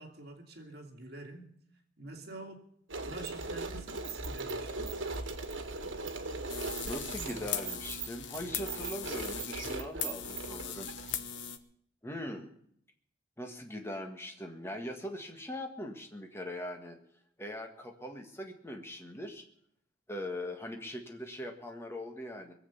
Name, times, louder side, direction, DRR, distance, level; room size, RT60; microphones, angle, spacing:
voice 1, 0.0-1.5 2.0-2.6 3.0-4.9, right 2 dB, 55° right, 3 dB, 2.5 m, -47 dB
sound 1, 2.9-11.4, right 3 dB, 80° right, 1.7 m, -39 dB
sound 2, 6.5-11.6, left 8 dB, 70° left, 1.0 m, -39 dB
voice 2, 6.8-10.9 12.0-12.5 13.4-17.0 17.4-19.4 20.1-22.5, left 1 dB, 15° left, 3 dB, 1.7 m, -41 dB
22.0 x 8.0 x 7.0 m, 0.67 s
head